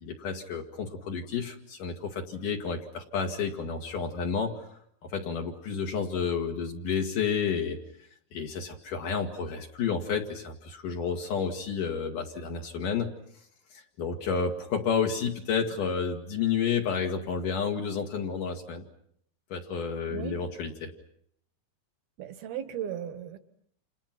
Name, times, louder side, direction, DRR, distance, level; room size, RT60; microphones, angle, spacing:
voice 1, 0.0-7.8 8.3-13.1 13.7-18.8 19.5-20.9, left 6 dB, 60° left, 1 dB, 3.2 m, -31 dB
voice 2, 20.1-20.4 22.2-23.4, right 10 dB, 75° right, 10 dB, 3.4 m, -36 dB
30.0 x 28.5 x 6.0 m, 0.68 s
omnidirectional pair, 4.5 m